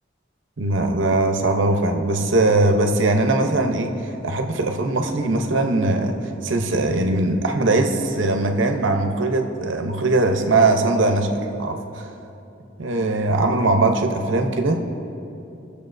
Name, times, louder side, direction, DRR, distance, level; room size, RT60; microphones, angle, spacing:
voice 1, 0.6-6.1 6.4-11.3 11.6-12.1 12.8-14.8, right 2 dB, 75° right, 4 dB, 0.8 m, -20 dB
18.0 x 6.7 x 2.6 m, 2.8 s
head